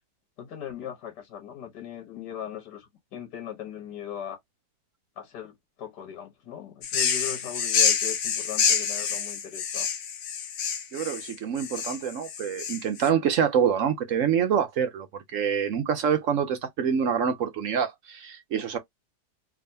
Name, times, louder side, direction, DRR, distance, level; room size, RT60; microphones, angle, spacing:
voice 1, 0.4-4.4 5.2-9.9, left 9 dB, 80° left, 1.7 m, -39 dB
sound 1, 6.8-13.1, left 7 dB, 60° left, 0.9 m, -27 dB
voice 2, 10.9-15.1 15.3-18.8, right 7 dB, 65° right, 0.8 m, -26 dB
3.5 x 2.9 x 2.7 m
omnidirectional pair, 1.8 m